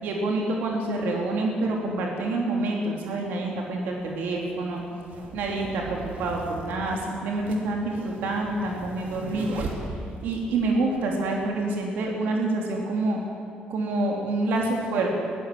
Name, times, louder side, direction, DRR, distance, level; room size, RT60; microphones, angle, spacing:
voice 1, 0.0-4.8 5.3-9.8 10.2-13.2 13.7-15.1, right 2 dB, 85° right, 0 dB, 3.3 m, -27 dB
sound 1, 3.0-3.1 4.1-10.5, right 3 dB, 65° right, 3.0 m, -39 dB
21.5 x 16.0 x 7.9 m, 2.5 s
cardioid pair, 175°, 3 cm